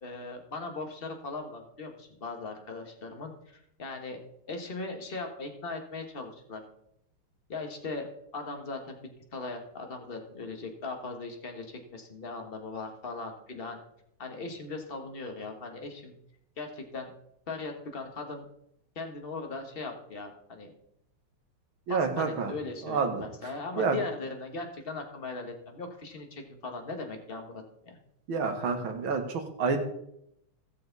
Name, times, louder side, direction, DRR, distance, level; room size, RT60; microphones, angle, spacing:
voice 1, 0.0-4.2 4.5-6.6 7.5-13.8 14.2-16.2 16.6-17.1 17.5-18.5 18.9-20.7 21.9-28.0, left 3 dB, 30° left, 4 dB, 1.5 m, -39 dB
voice 2, 21.9-22.5 22.8-23.3 23.8-24.0 28.3-29.8, right 5 dB, 70° right, 5 dB, 2.1 m, -28 dB
16.5 x 6.8 x 4.0 m, 0.76 s
omnidirectional pair, 2.4 m